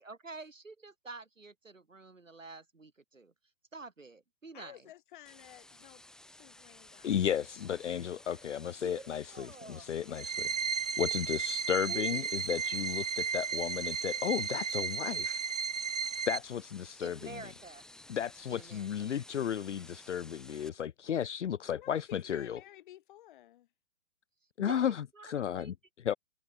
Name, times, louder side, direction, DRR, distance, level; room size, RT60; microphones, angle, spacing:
voice 1, 0.0-3.3 3.7-4.9 8.3-8.4 8.8-9.9 11.9-12.4 17.0-17.8 18.5-19.1 24.6-25.7, right 3 dB, 90° right, 1.6 m, -48 dB
voice 2, 4.5-6.0 6.3-7.3 7.6-8.1 21.7-23.7, left 13 dB, 40° left, 4.7 m, -54 dB
sound 1, 5.3-20.7, left 1 dB, ahead, 1.8 m, -55 dB
voice 3, 7.0-10.5 11.0-15.4 16.3-17.2 18.1-22.6 24.6-25.0 25.2-25.7 26.0-26.1, left 9 dB, 70° left, 0.6 m, -34 dB
sound 2, 10.1-16.4, right 6 dB, 75° right, 1.3 m, -34 dB
figure-of-eight pair, 125°, 38 cm